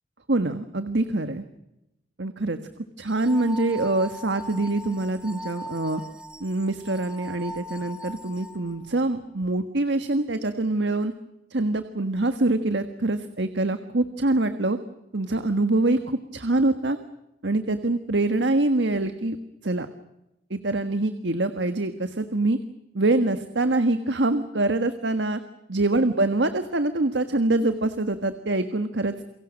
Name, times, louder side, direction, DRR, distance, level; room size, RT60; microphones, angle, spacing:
voice 1, 0.3-1.4 2.2-2.6 3.0-6.0 6.4-11.1 11.5-14.8 15.1-17.0 17.4-19.4 19.6-19.9 20.5-22.6 22.9-25.4 25.7-29.1, right 2 dB, 85° right, 9 dB, 1.5 m, -24 dB
sound 1, 3.1-8.9, equal, 5° right, 1.5 m, -40 dB
28.5 x 23.5 x 6.5 m, 0.88 s
head